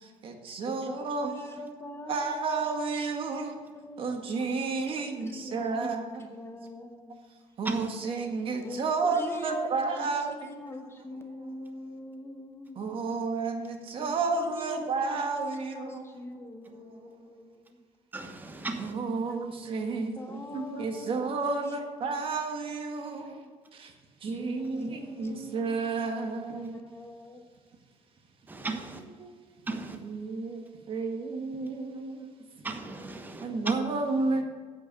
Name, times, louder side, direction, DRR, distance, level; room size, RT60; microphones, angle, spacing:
voice 1, 0.0-1.6 2.1-3.5 4.0-6.3 7.6-10.3 12.7-16.1 16.7-17.1 18.8-23.9 24.2-26.8 28.7-28.8 29.2-29.7 29.9-32.3 33.4-34.4, right 4 dB, 45° right, 4 dB, 1.6 m, -32 dB
voice 2, 0.6-2.4 3.7-4.0 4.5-5.8 6.2-7.3 8.6-8.8 9.1-12.8 14.0-15.0 15.4-17.9 19.9-21.7 22.2-22.3 24.3-25.7 26.6-27.5, left 1 dB, 20° left, 5 dB, 1.1 m, -43 dB
voice 3, 18.1-18.9 28.5-29.0 29.7-30.0 32.6-33.7, right 3 dB, 15° right, 5 dB, 1.2 m, -35 dB
8.3 x 8.0 x 6.7 m, 1.6 s
cardioid pair, 120°, 12 cm